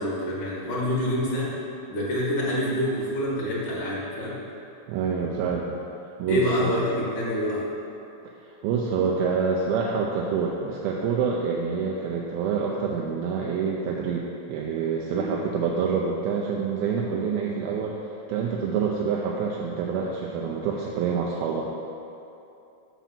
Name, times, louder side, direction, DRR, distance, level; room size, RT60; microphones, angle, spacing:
voice 1, 0.0-1.5 1.9-4.4 6.3-7.6 15.1-15.3, equal, 45° left, -6 dB, 1.6 m, -26 dB
voice 2, 4.9-5.8 6.2-6.7 8.6-18.0 18.3-21.7, right 5 dB, 85° right, -2 dB, 2.5 m, -27 dB
5.9 x 5.9 x 7.0 m, 2.8 s
omnidirectional pair, 4.3 m